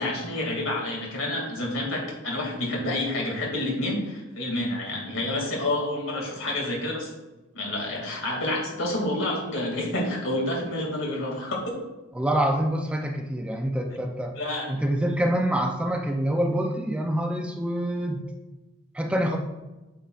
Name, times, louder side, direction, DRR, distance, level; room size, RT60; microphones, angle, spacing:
voice 1, 0.0-7.1 7.5-11.7 14.4-14.7, left 1 dB, 80° left, -1 dB, 2.4 m, -29 dB
voice 2, 12.2-14.3 14.7-18.2 18.9-19.4, right 1 dB, 5° right, 3 dB, 0.5 m, -26 dB
8.8 x 7.0 x 2.5 m, 1.1 s
head